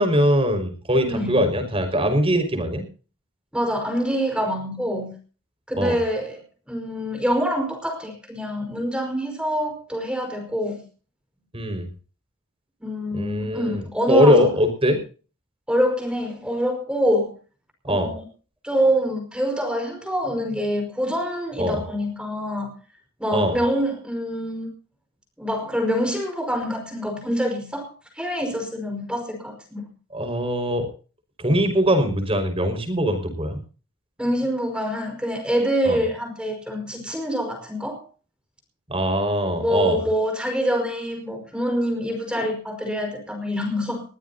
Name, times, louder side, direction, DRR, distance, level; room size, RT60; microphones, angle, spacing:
voice 1, 0.0-2.8 5.8-6.0 11.5-11.8 13.1-15.0 17.8-18.1 21.6-21.8 23.3-23.5 30.1-30.9 31.4-33.6 35.9-36.0 38.9-40.0, equal, 25° right, 7 dB, 5.5 m, -21 dB
voice 2, 1.1-1.5 3.5-5.2 5.7-10.8 12.8-14.5 15.7-17.3 17.9-18.3 18.6-22.7 23.2-24.7 25.4-29.8 34.2-38.0 39.6-44.0, equal, 5° right, 4 dB, 5.3 m, -25 dB
21.5 x 16.5 x 2.8 m, 0.37 s
head